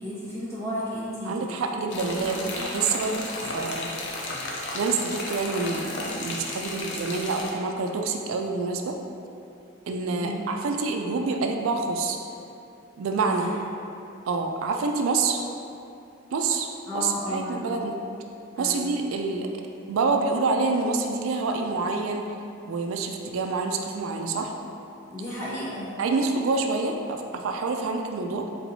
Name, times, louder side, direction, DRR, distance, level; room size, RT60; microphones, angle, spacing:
voice 1, 0.0-1.5 1.9-2.2 10.2-10.3 13.3-13.5 16.9-17.8 18.6-18.9 25.1-25.9, left 1 dB, 15° left, -9 dB, 0.9 m, -33 dB
voice 2, 1.2-3.9 4.7-9.0 9.9-12.2 13.0-13.5 14.3-15.4 16.3-16.7 16.9-18.0 18.6-19.5 19.9-22.2 22.6-24.5 26.0-28.5, right 4 dB, 85° right, 3 dB, 0.4 m, -27 dB
sound 1, 1.9-7.5, left 1 dB, 60° left, 0.5 m, -33 dB
4.4 x 4.0 x 2.7 m, 2.6 s
head